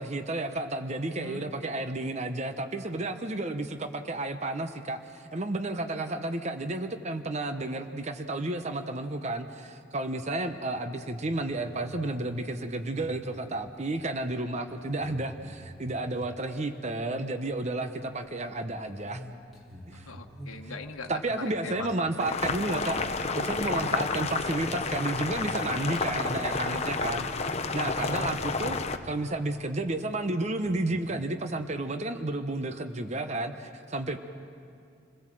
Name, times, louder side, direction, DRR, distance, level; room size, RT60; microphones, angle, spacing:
voice 1, 0.0-5.0 5.3-19.2 19.9-20.1 21.1-28.8 29.0-34.2, right 2 dB, 30° right, 8 dB, 0.8 m, -32 dB
voice 2, 1.2-1.5 10.4-10.6 19.9-21.9 22.2-22.4 24.0-24.1 26.6-27.3 28.1-28.4, left 3 dB, 80° left, 4 dB, 1.2 m, -42 dB
sound 1, 11.6-16.7 17.0-17.5 17.8-22.6 23.0-23.4 23.9-24.3 24.7-26.8 27.0-27.2 27.6-29.6 29.9-30.0 30.6-31.2, equal, ahead, 3.4 m, -47 dB
Boiling, 22.2-29.0, left 4 dB, 30° left, 0.7 m, -30 dB
28.0 x 17.5 x 7.6 m, 2.4 s
head